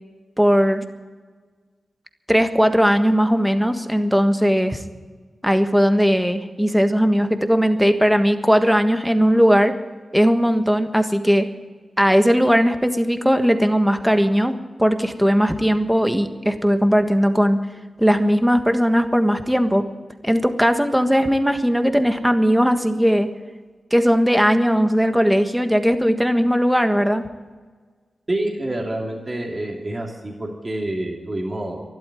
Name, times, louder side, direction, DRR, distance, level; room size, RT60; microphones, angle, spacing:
voice 1, 0.4-0.8 2.3-4.8 5.4-9.7 10.1-11.5 12.0-14.5 14.8-17.6 18.0-19.8 20.2-23.3 23.9-27.2, equal, 5° right, 8 dB, 1.5 m, -18 dB
voice 2, 28.3-31.8, right 1 dB, 35° right, 0 dB, 3.0 m, -27 dB
12.0 x 12.0 x 9.2 m, 1.4 s
cardioid pair, 55°, 0 cm